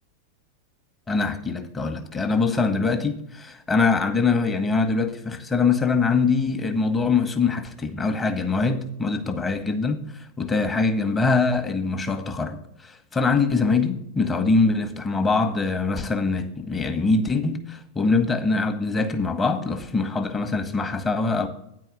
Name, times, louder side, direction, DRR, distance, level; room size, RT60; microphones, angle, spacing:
voice 1, 1.1-21.5, left 4 dB, 15° left, 1.1 m, -23 dB
9.4 x 4.8 x 7.6 m
figure-of-eight pair, 90°, 0 cm